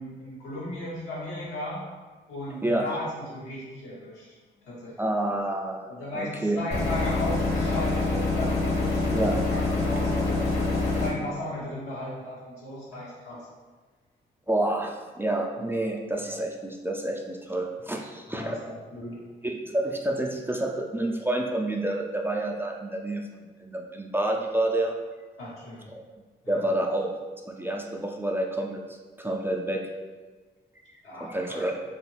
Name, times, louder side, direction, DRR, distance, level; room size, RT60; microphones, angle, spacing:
voice 1, 0.0-1.8 2.3-4.2 4.5-5.1 5.9-10.4 10.8-13.5 15.6-15.8 18.3-19.2 25.4-25.9 26.4-26.6 31.0-31.6, left 1 dB, 85° left, -8 dB, 1.1 m, -36 dB
voice 2, 2.6-3.0 5.0-5.9 6.1-6.6 9.1-9.4 14.5-18.6 19.4-25.0 26.5-27.1 27.5-28.8 29.2-29.9 31.2-31.7, right 1 dB, 10° right, 1 dB, 0.4 m, -28 dB
sound 1, 6.7-11.1, left 3 dB, 50° left, 0.9 m, -25 dB
2.5 x 2.4 x 3.2 m, 1.4 s
supercardioid pair, 45°, 21 cm